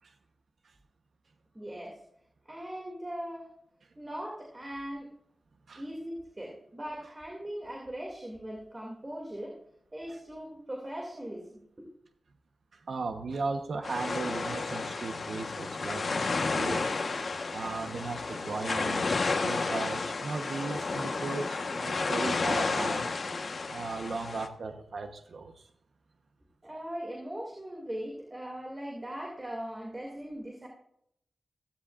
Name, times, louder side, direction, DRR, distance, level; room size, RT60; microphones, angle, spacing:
voice 1, 1.5-2.0 2.4-3.5 4.0-5.1 5.7-9.6 9.9-11.9 26.6-30.7, equal, 20° right, -1 dB, 2.5 m, -40 dB
voice 2, 12.7-17.2 17.5-23.2 23.7-25.7, right 4 dB, 60° right, 6 dB, 1.0 m, -37 dB
sound 1, 13.8-24.5, left 3 dB, 50° left, 1.2 m, -32 dB
15.5 x 15.5 x 2.5 m, 0.73 s
wide cardioid pair, 170°, 0 cm